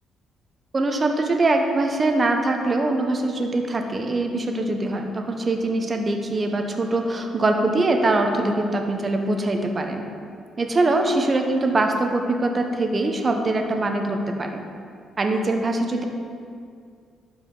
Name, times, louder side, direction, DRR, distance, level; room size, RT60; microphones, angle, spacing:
voice 1, 0.7-10.0 10.6-14.6 15.2-16.0, right 2 dB, 35° right, 4 dB, 1.0 m, -23 dB
12.5 x 5.0 x 3.9 m, 2.3 s
cardioid pair, 90°, 0 cm